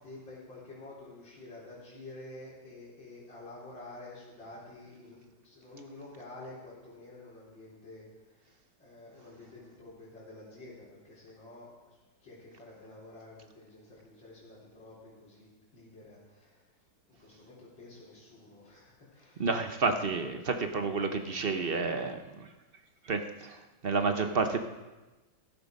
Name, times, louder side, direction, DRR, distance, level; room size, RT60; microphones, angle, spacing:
voice 1, 0.0-5.2 5.4-8.0 8.5-16.6 17.1-19.5 22.0-22.1, left 2 dB, 85° left, -7 dB, 4.8 m, -49 dB
voice 2, 19.4-22.2 23.1-23.6 23.8-24.6, right 4 dB, 50° right, 7 dB, 0.7 m, -30 dB
14.0 x 13.0 x 5.3 m, 1.1 s
omnidirectional pair, 2.0 m